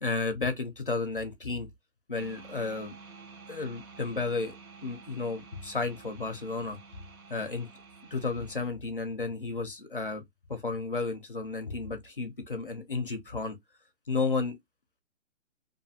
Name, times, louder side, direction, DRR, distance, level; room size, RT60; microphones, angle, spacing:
voice 1, 0.0-1.7 2.1-3.0 3.5-4.6 4.8-6.8 7.3-7.7 8.1-10.2 10.5-13.6 14.1-14.6, left 3 dB, 45° left, 0.4 m, -32 dB
sound 1, 2.2-8.7, right 4 dB, 90° right, 0.9 m, -50 dB
2.6 x 2.4 x 2.6 m
hypercardioid pair, 175°, 41 cm